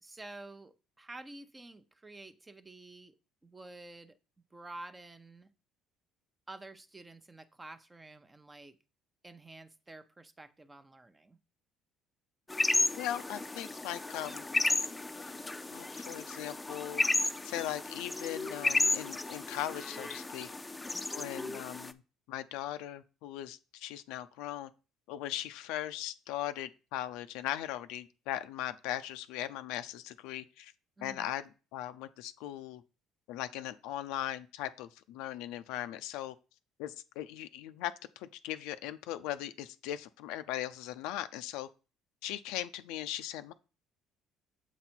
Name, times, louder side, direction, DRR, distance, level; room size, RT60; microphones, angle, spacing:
voice 1, 0.0-3.1 3.4-4.2 4.5-5.5 6.5-8.8 9.2-11.4 20.8-21.1 21.4-21.6 31.0-31.3, right 2 dB, 20° right, 0.7 m, -50 dB
sound 1, 12.5-21.9, left 2 dB, 15° left, 0.5 m, -33 dB
voice 2, 12.9-14.4 15.2-15.3 15.7-17.0 17.4-20.5 21.1-21.9 22.3-24.7 25.1-30.7 31.0-32.8 33.3-36.3 36.8-41.7 42.2-43.5, left 13 dB, 80° left, 0.4 m, -39 dB
7.5 x 4.1 x 4.4 m
supercardioid pair, 70°, 0 cm